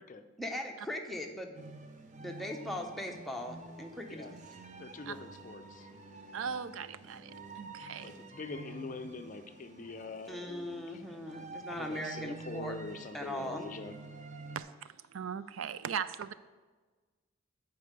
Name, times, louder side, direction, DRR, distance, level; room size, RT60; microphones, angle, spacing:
voice 1, 0.4-1.6 2.2-4.3 10.3-12.7 13.1-13.6, left 1 dB, ahead, 2 dB, 0.7 m, -39 dB
sound 1, 1.6-14.6, right 3 dB, 35° right, 0.7 m, -49 dB
voice 2, 4.8-5.9 8.0-11.0 11.7-14.0, left 3 dB, 40° left, 8 dB, 0.5 m, -44 dB
voice 3, 6.3-8.1 14.6-16.3, right 7 dB, 75° right, 14 dB, 0.4 m, -39 dB
8.4 x 4.6 x 6.6 m, 1.3 s
head